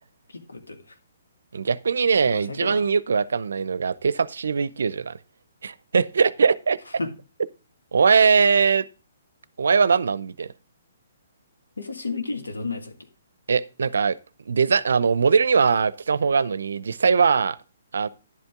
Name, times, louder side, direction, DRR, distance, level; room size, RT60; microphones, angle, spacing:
voice 1, 0.3-0.8 2.3-2.8 7.0-7.1 11.8-12.9, left 3 dB, 85° left, 1.9 m, -32 dB
voice 2, 1.5-5.2 5.6-6.8 7.9-8.9 9.6-10.5 13.5-14.2 14.5-17.6 17.9-18.1, right 5 dB, 70° right, 0.6 m, -21 dB
11.0 x 7.9 x 3.7 m
figure-of-eight pair, 135°, 0 cm